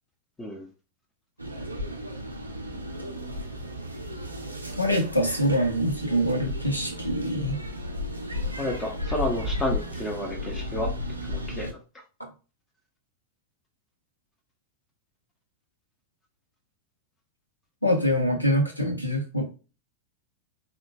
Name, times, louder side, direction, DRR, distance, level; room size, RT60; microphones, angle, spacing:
sound 1, 1.4-11.7, left 1 dB, 85° right, 0.5 m, -34 dB
voice 1, 4.8-7.6 17.8-19.4, equal, 85° left, 3 dB, 0.7 m, -24 dB
voice 2, 8.6-10.9 11.3-11.8, left 1 dB, 15° left, 0 dB, 0.6 m, -31 dB
3.7 x 2.2 x 2.2 m, 0.33 s
figure-of-eight pair, 90°, 0 cm